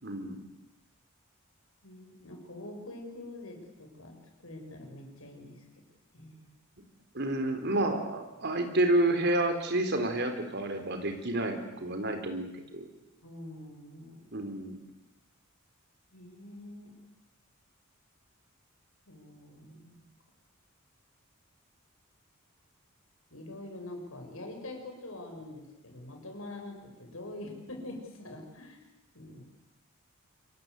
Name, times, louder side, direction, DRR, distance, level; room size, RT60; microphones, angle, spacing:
voice 1, 0.0-0.4 7.1-12.9 14.3-14.8, right 1 dB, 55° right, 6 dB, 3.9 m, -29 dB
voice 2, 1.8-5.7 6.1-6.5 13.2-14.3 16.1-16.9 19.1-20.0 23.3-28.9 29.1-29.5, left 1 dB, 75° left, 3 dB, 6.8 m, -45 dB
26.0 x 23.0 x 8.3 m, 0.96 s
head